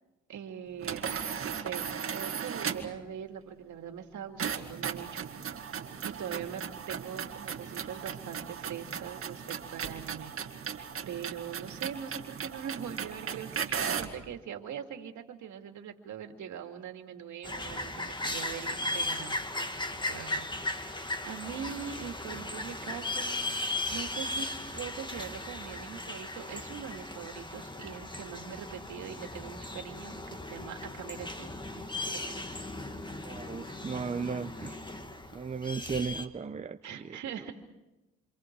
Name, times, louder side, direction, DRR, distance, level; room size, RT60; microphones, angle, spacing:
voice 1, 0.3-5.3 6.0-10.3 10.8-19.4 20.1-21.0 21.2-24.5 24.7-32.6 36.8-37.5, right 8 dB, 70° right, 5 dB, 2.5 m, -42 dB
sound 1, 0.8-3.0 4.4-14.2, right 7 dB, 45° right, 2.1 m, -37 dB
sound 2, 17.4-36.3, left 2 dB, 15° left, 1.8 m, -37 dB
voice 2, 33.2-34.8 35.3-37.0, right 5 dB, 25° right, 9 dB, 0.7 m, -35 dB
28.0 x 27.0 x 4.7 m, 1.0 s
cardioid pair, 90°, 30 cm